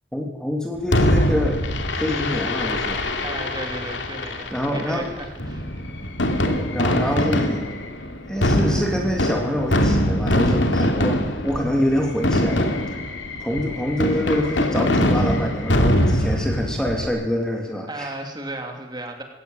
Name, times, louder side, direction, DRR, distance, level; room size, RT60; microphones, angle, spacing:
voice 1, 0.1-1.6 1.9-3.0 4.5-5.1 6.4-7.6 8.3-13.0 13.4-18.1, left 1 dB, 5° left, 1 dB, 2.7 m, -25 dB
Fireworks, 0.9-17.1, left 1 dB, 80° left, 2.7 m, -23 dB
voice 2, 3.2-5.7 17.9-19.2, right 2 dB, 20° right, 3 dB, 3.1 m, -34 dB
20.5 x 17.5 x 9.1 m, 1.1 s
head